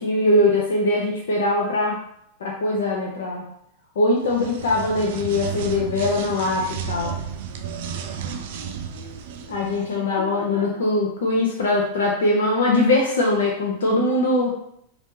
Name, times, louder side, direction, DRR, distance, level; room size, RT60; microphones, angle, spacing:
voice 1, 0.0-2.0 2.4-3.5 4.0-7.1 9.5-14.5, left 2 dB, 65° left, -2 dB, 0.6 m, -21 dB
sound 1, 4.2-9.9, right 7 dB, 55° right, 0.4 m, -33 dB
voice 2, 7.9-10.7, left 1 dB, 85° right, 0 dB, 0.7 m, -42 dB
4.1 x 2.6 x 3.2 m, 0.73 s
figure-of-eight pair, 90°, 0 cm